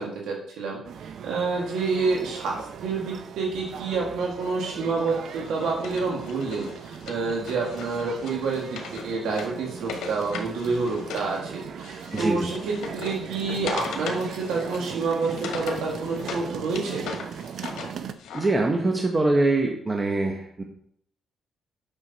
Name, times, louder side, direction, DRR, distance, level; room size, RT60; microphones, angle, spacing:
voice 1, 0.0-17.0, right 4 dB, 80° right, -1 dB, 1.8 m, -28 dB
sound 1, 0.8-18.1, right 7 dB, 65° right, 0.6 m, -38 dB
Wood, 5.3-11.3 11.6-16.5 16.8-18.5, left 5 dB, 80° left, 1.7 m, -38 dB
voice 2, 12.1-12.5 18.3-20.6, right 2 dB, 25° right, 2 dB, 1.2 m, -23 dB
9.0 x 6.3 x 4.1 m, 0.67 s
cardioid pair, 90°, 0 cm